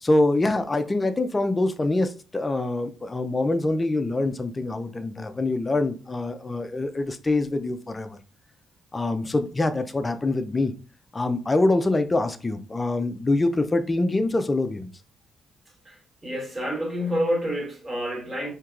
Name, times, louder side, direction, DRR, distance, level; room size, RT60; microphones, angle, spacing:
voice 1, 0.0-8.2 8.9-10.7 11.1-14.9, left 2 dB, 20° left, 0.4 m, -24 dB
voice 2, 16.2-18.5, equal, 25° right, 1.4 m, -28 dB
4.4 x 2.9 x 2.4 m
cardioid pair, 95°, 0 cm